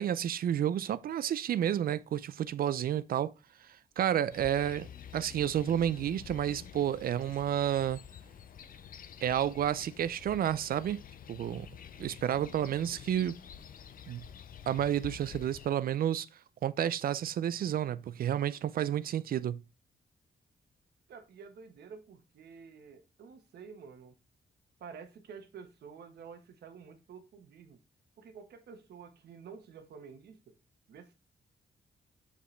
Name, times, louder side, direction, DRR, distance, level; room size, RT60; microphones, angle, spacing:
voice 1, 0.0-3.3 4.0-4.9 5.1-8.0 9.2-11.0 11.3-11.7 12.0-13.4 14.1-14.2 14.7-16.3 16.6-19.6, right 10 dB, 65° right, 0.4 m, -30 dB
sound 1, 4.3-15.7, left 8 dB, 60° left, 0.5 m, -49 dB
voice 2, 21.1-24.1 24.8-27.8 28.2-30.5 30.9-31.1, right 6 dB, 85° right, 1.1 m, -50 dB
6.8 x 5.0 x 3.2 m
cardioid pair, 100°, 17 cm